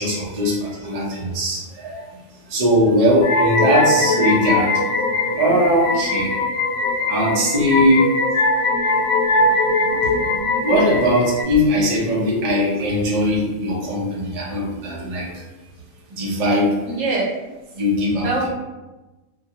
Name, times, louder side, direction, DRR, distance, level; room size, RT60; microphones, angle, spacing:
voice 1, 0.0-2.0 2.5-4.9 5.3-6.3 7.1-8.1 10.6-15.4 16.2-16.8 17.7-18.3, equal, 40° right, -5 dB, 0.6 m, -20 dB
sound 1, 3.2-11.4, left 2 dB, 65° left, 0.8 m, -21 dB
voice 2, 9.8-10.3 16.9-17.2 18.2-18.5, right 3 dB, 80° right, -3 dB, 1.1 m, -25 dB
2.5 x 2.3 x 2.8 m, 1.1 s
omnidirectional pair, 1.3 m